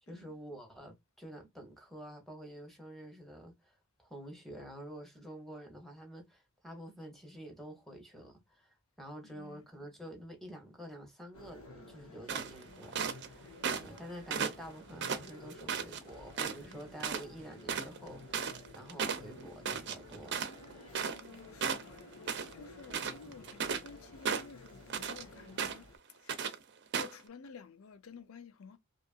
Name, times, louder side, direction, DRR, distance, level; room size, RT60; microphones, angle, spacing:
voice 1, 0.1-13.5 13.8-20.4 23.2-23.4, equal, ahead, 0.8 m, -49 dB
voice 2, 9.2-9.6 21.2-25.9 26.2-26.4 27.0-28.8, left 5 dB, 65° left, 0.5 m, -53 dB
sound 1, 11.3-26.0, left 2 dB, 80° left, 1.2 m, -53 dB
sound 2, 12.3-13.3 13.6-14.0 14.3-16.0 16.4-16.7 17.0-17.2 17.5-21.3 21.6-22.5 22.8-23.9 24.2-25.2 25.6-26.0 26.3-26.5 26.9-27.2, right 6 dB, 55° right, 0.5 m, -35 dB
2.8 x 2.4 x 2.3 m
head